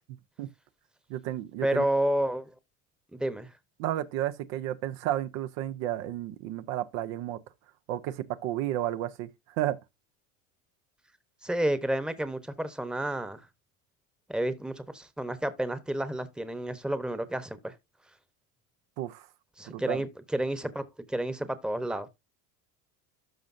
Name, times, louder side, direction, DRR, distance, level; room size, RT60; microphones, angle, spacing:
voice 1, 1.1-1.8 3.8-7.4 7.9-9.8 19.0-19.3 19.7-20.0, right 13 dB, 75° right, 0.9 m, -32 dB
voice 2, 1.6-2.5 3.1-3.5 11.4-13.4 14.3-17.7 19.6-22.1, right 1 dB, ahead, 0.9 m, -30 dB
13.0 x 5.2 x 2.6 m
supercardioid pair, 100°, 41 cm